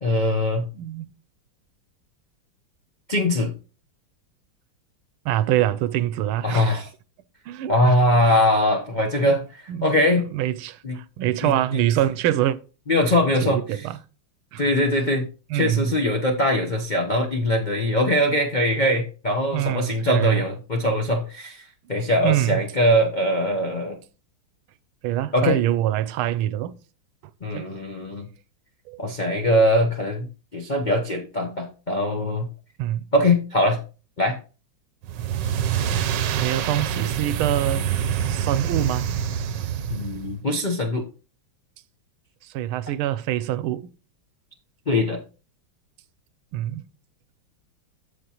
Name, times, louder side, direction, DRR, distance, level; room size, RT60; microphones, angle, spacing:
voice 1, 0.0-0.7 3.1-3.5 6.4-6.9 7.7-10.3 10.8-11.0 11.4-11.8 12.9-13.9 14.6-15.3 15.5-24.0 25.3-25.6 27.4-28.3 29.0-30.3 30.5-32.5 33.1-33.8 34.2-34.4 39.9-41.1 44.9-45.2, left 1 dB, 60° left, 0.4 m, -22 dB
voice 2, 0.7-1.1 5.2-6.7 7.5-7.9 8.3-8.4 9.7-9.9 10.1-12.6 13.4-14.0 14.5-14.6 15.5-15.9 19.5-20.4 22.2-22.6 25.0-26.7 27.5-27.7 28.9-29.0 32.8-33.1 36.3-37.8 38.3-39.1 42.4-43.9 46.5-46.8, right 13 dB, 85° right, 1.5 m, -25 dB
sound 1, 35.0-40.4, right 8 dB, 65° right, 1.2 m, -26 dB
14.5 x 5.2 x 2.9 m
omnidirectional pair, 2.3 m